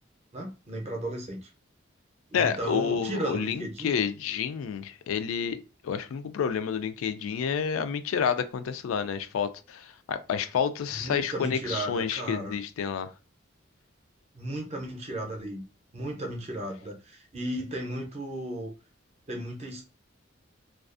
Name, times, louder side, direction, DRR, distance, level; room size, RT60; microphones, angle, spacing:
voice 1, 0.3-1.5 2.3-4.0 10.9-12.5 14.3-15.6 15.9-18.7 19.3-19.8, right 1 dB, 30° right, 0.6 m, -35 dB
voice 2, 2.3-13.1, left 7 dB, 90° left, 0.3 m, -29 dB
2.4 x 2.3 x 2.4 m
head